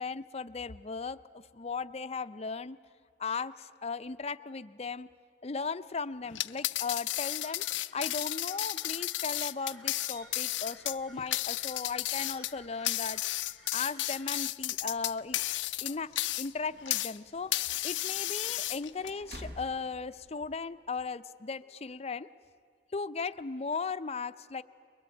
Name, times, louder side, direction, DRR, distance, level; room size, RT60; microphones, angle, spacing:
voice 1, 0.0-2.8 3.2-5.1 5.4-7.6 7.9-13.2 13.7-15.4 15.8-16.1 16.4-22.3 22.9-24.6, left 4 dB, 35° left, 12 dB, 0.5 m, -37 dB
sound 1, 6.3-17.2 17.5-19.1, left 16 dB, 80° left, 0.5 m, -33 dB
sound 2, 7.1-14.4, right 1 dB, ahead, 1.0 m, -57 dB
sound 3, 10.1-20.9, equal, 55° right, 2.0 m, -55 dB
22.5 x 21.5 x 8.9 m, 2.2 s
head